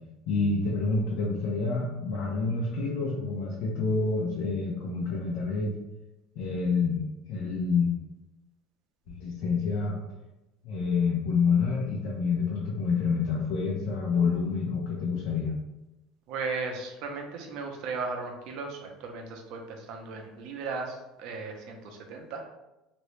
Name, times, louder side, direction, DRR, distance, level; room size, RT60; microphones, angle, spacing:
voice 1, 0.3-5.7 6.4-7.0 7.3-7.9 9.1-10.0 10.6-15.5, left 4 dB, 70° left, -4 dB, 0.7 m, -28 dB
voice 2, 16.3-22.4, right 4 dB, 65° right, 2 dB, 0.6 m, -36 dB
3.0 x 2.6 x 3.1 m, 0.97 s
supercardioid pair, 125°, 0 cm